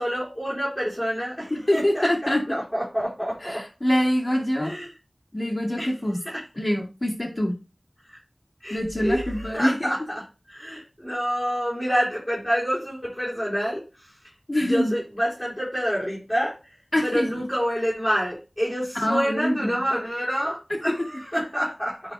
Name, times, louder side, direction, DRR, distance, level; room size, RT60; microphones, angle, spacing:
voice 1, 0.0-3.7 4.6-4.9 5.8-5.9 6.2-6.4 8.1-8.2 8.6-14.1 14.6-16.8 17.0-22.1, equal, 15° left, -8 dB, 3.8 m, -28 dB
voice 2, 1.5-2.6 3.4-4.7 5.3-6.2 6.6-7.5 8.7-9.9 14.5-14.9 16.9-17.4 19.0-19.8 20.7-20.8, left 1 dB, 40° left, 0 dB, 2.1 m, -25 dB
9.4 x 4.2 x 3.4 m, 0.30 s
wide cardioid pair, 50°, 0 cm